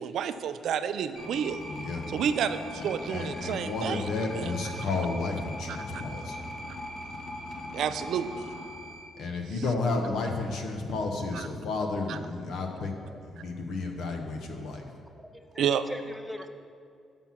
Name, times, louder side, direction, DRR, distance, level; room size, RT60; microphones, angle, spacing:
voice 1, 0.0-1.6 2.1-4.0 4.4-4.5 5.9-6.0 7.7-8.4 11.3-11.5 12.1-12.2 15.6-15.8, right 8 dB, 75° right, 11 dB, 0.3 m, -30 dB
sound 1, 1.2-9.0, left 1 dB, 50° left, 1.2 m, -40 dB
voice 2, 1.7-2.1 2.8-2.9 3.1-6.4 9.2-12.9 13.2-14.9, left 3 dB, 75° left, 3 dB, 0.9 m, -32 dB
voice 3, 13.0-13.4 15.2-16.5, equal, ahead, 7 dB, 0.6 m, -42 dB
5.8 x 5.5 x 6.1 m, 2.3 s
cardioid pair, 90°, 0 cm